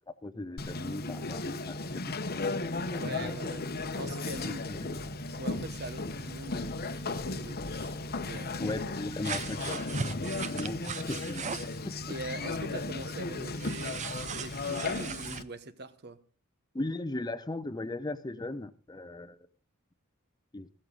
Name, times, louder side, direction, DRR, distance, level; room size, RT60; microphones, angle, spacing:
voice 1, 0.1-2.2 2.4-3.3 4.4-4.9 8.6-11.6 11.8-11.9 16.7-19.4 20.5-20.7, left 2 dB, 20° left, 0.7 m, -38 dB
Conversation, 0.6-15.4, left 3 dB, 45° left, 1.0 m, -35 dB
voice 2, 3.0-4.6 5.3-8.7 12.1-16.2, right 1 dB, 50° right, 1.1 m, -43 dB
sound 1, 9.2-11.8 13.6-15.4, right 6 dB, 35° right, 0.5 m, -38 dB
15.0 x 13.0 x 3.9 m
head